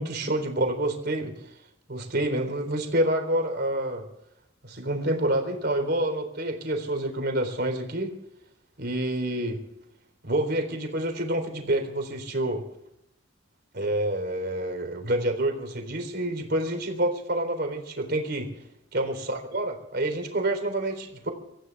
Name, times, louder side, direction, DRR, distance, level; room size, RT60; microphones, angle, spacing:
voice 1, 0.0-1.3 1.9-4.0 4.6-8.1 8.8-9.6 10.2-12.6 13.7-18.5 18.9-21.3, right 1 dB, 50° right, 4 dB, 3.9 m, -28 dB
25.5 x 14.5 x 3.6 m, 0.82 s
head